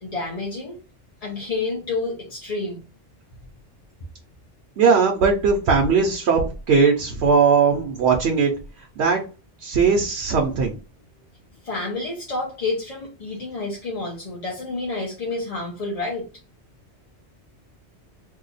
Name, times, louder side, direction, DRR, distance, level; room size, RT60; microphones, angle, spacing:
voice 1, 0.0-0.8 1.2-2.8 11.6-16.3, left 3 dB, 40° left, -3 dB, 0.7 m, -29 dB
voice 2, 4.8-8.5 9.0-9.2 9.6-10.7, right 5 dB, 70° right, 2 dB, 0.9 m, -19 dB
2.8 x 2.3 x 3.9 m, 0.32 s
omnidirectional pair, 1.2 m